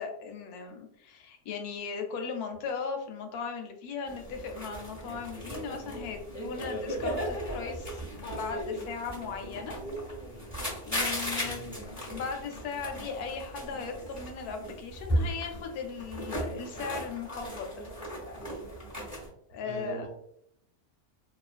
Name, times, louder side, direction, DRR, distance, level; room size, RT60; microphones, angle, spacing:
voice 1, 0.0-9.7 10.9-17.8 19.5-20.1, left 5 dB, 85° left, 4 dB, 1.1 m, -38 dB
sound 1, 4.1-19.3, equal, 5° right, 1.1 m, -36 dB
voice 2, 11.4-11.7 19.6-20.1, right 3 dB, 60° right, -2 dB, 0.9 m, -41 dB
2.7 x 2.4 x 2.3 m, 0.73 s
omnidirectional pair, 1.6 m